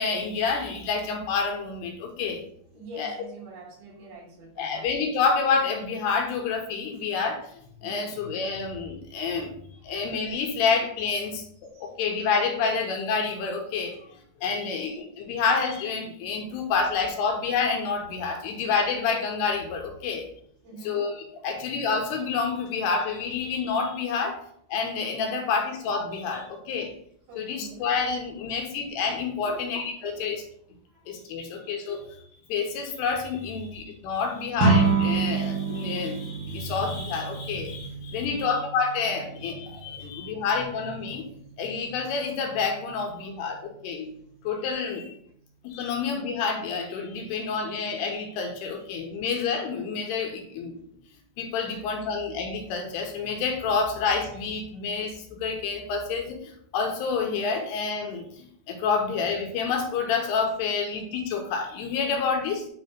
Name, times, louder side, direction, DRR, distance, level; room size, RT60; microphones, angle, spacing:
voice 1, 0.0-2.4 3.0-3.2 4.6-7.4 7.8-9.6 9.8-20.3 20.8-24.4 24.7-26.9 27.4-30.4 31.1-32.0 32.5-41.3 41.6-44.1 44.4-45.1 45.6-50.8 51.4-62.7, left 5 dB, 75° left, 2 dB, 2.9 m, -28 dB
voice 2, 2.7-4.9 7.8-8.1 9.9-10.0 11.7-11.9 14.5-14.8 20.6-21.0 25.3-25.7 27.3-27.8 29.5-30.4 30.9-31.7 36.0-36.1 38.1-38.6 40.0-40.5 45.8-45.9 51.6-51.9, right 2 dB, 80° right, -3 dB, 4.8 m, -46 dB
sound 1, 34.6-44.1, right 4 dB, 60° right, 2.4 m, -30 dB
9.1 x 3.4 x 5.1 m, 0.66 s
omnidirectional pair, 5.1 m